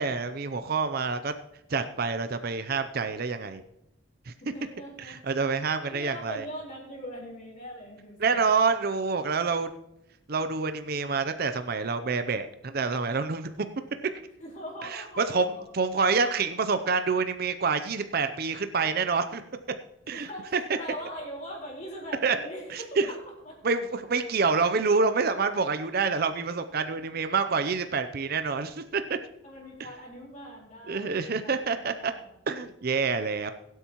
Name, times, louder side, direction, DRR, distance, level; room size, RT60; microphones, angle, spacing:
voice 1, 0.0-1.3 1.7-3.6 4.3-4.4 5.0-6.4 8.2-9.7 10.3-13.5 14.8-19.4 20.1-20.6 22.2-22.4 22.7-23.1 23.6-29.2 29.8-29.9 30.9-32.1 32.5-33.5, right 4 dB, 50° right, 10 dB, 0.6 m, -27 dB
voice 2, 4.4-5.2 5.9-8.6 14.4-15.6 20.0-22.8 23.0-23.2 23.4-23.6 26.5-26.6 29.4-31.6 32.0-32.3, equal, 40° left, -3 dB, 4.3 m, -41 dB
22.0 x 8.2 x 3.0 m, 0.86 s
head